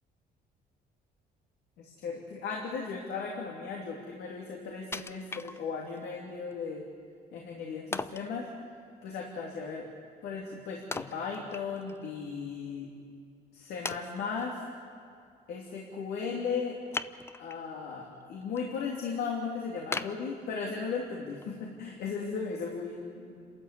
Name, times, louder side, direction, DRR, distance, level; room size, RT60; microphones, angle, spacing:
voice 1, 1.8-6.8 7.3-8.5 9.0-9.9 10.2-12.9 13.5-14.6 15.5-16.8 17.4-23.4, left 5 dB, 75° left, -1 dB, 2.7 m, -36 dB
Wood, 4.9-6.0 6.5-6.6 7.9-8.3 10.9-12.0 12.4-12.5 13.1-13.2 13.8-14.5 16.9-17.7 18.1-18.6 19.0-19.1 19.9-20.9 21.4-21.5, left 3 dB, 15° left, 0.6 m, -38 dB
28.0 x 13.5 x 8.2 m, 2.3 s
cardioid pair, 110°, 17 cm